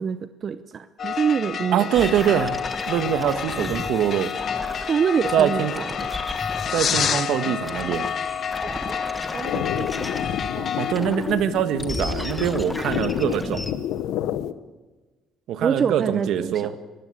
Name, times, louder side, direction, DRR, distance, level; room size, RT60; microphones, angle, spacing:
voice 1, 0.0-1.9 4.9-5.9 8.7-9.0 9.3-10.1 10.5-10.8 15.6-16.8, right 7 dB, 40° right, 12 dB, 0.7 m, -26 dB
sound 1, 1.0-10.9, left 7 dB, 45° left, 1.3 m, -29 dB
voice 2, 1.7-2.6 2.9-4.3 5.3-5.7 6.7-8.1 10.7-13.7 15.5-16.7, right 9 dB, 70° right, 10 dB, 1.5 m, -23 dB
sound 2, 1.9-7.2 7.6-10.5 10.9-13.7, left 1 dB, 10° left, 1.4 m, -34 dB
sound 3, 9.4-14.5, left 11 dB, 80° left, 0.9 m, -29 dB
22.0 x 15.5 x 8.5 m, 1.3 s
cardioid pair, 125°, 0 cm